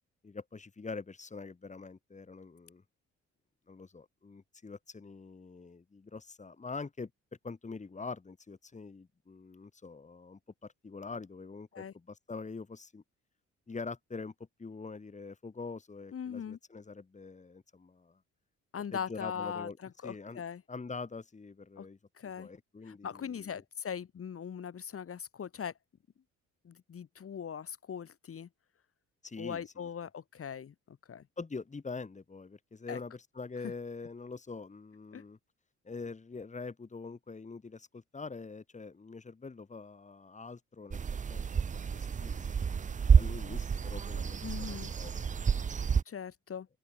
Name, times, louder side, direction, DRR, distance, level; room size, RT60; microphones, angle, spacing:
voice 1, 0.2-2.8 3.7-7.1 7.4-13.0 13.7-14.3 14.6-18.2 18.9-19.8 20.0-20.4 20.7-22.0 22.4-23.6 29.2-29.6 31.4-35.4 35.8-41.0 41.3-41.6 41.9-45.8, left 4 dB, 25° left, 2.5 m, -44 dB
voice 2, 16.1-16.6 18.7-20.6 21.8-21.9 22.1-22.5 22.9-25.7 26.6-28.5 29.4-31.2 32.9-33.0 33.6-33.7 35.1-35.2 44.4-44.9 46.1-46.7, left 7 dB, 50° left, 2.4 m, -40 dB
sound 1, 40.9-46.0, right 6 dB, 25° right, 0.5 m, -29 dB
open air
cardioid pair, 90°, 30 cm